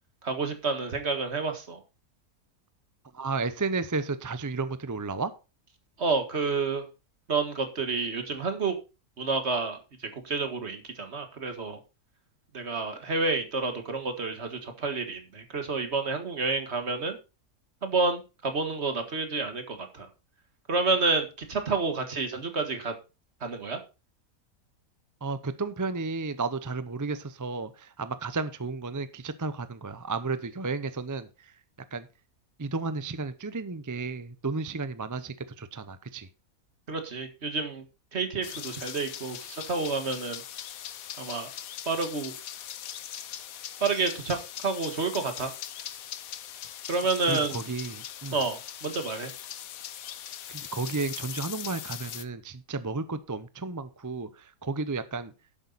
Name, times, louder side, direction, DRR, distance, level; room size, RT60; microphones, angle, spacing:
voice 1, 0.2-1.8 6.0-6.9 7.3-8.8 9.2-9.8 10.1-11.8 12.5-17.2 17.8-20.1 20.7-22.9 23.4-23.8 36.9-37.8 38.1-40.4 41.2-41.5 41.9-42.4 43.8-45.5 46.9-47.6 48.3-49.3, right 4 dB, 50° right, 7 dB, 1.9 m, -29 dB
voice 2, 3.1-5.3 25.2-31.5 31.9-32.1 32.6-36.3 47.3-48.4 50.5-55.3, right 3 dB, 25° right, 13 dB, 0.3 m, -33 dB
sound 1, 38.4-52.3, left 10 dB, 75° left, 1.2 m, -40 dB
11.0 x 8.3 x 4.0 m, 0.30 s
omnidirectional pair, 1.5 m